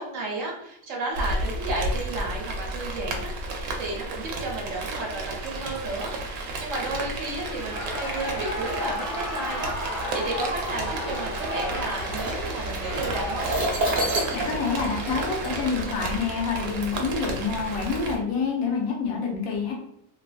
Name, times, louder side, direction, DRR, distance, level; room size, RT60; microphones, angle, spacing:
voice 1, 0.0-13.6, right 2 dB, 65° right, -1 dB, 1.1 m, -33 dB
Rain, 1.1-18.2, right 2 dB, 85° right, 1.0 m, -32 dB
Shout / Cheering, 7.1-16.0, left 1 dB, 50° left, 0.7 m, -35 dB
sound 1, 11.9-16.1 17.0-17.1 17.7-18.1, right 1 dB, 45° right, 0.8 m, -29 dB
voice 2, 14.0-19.7, left 5 dB, 80° left, 0 dB, 1.1 m, -27 dB
3.0 x 2.4 x 2.3 m, 0.75 s
omnidirectional pair, 1.5 m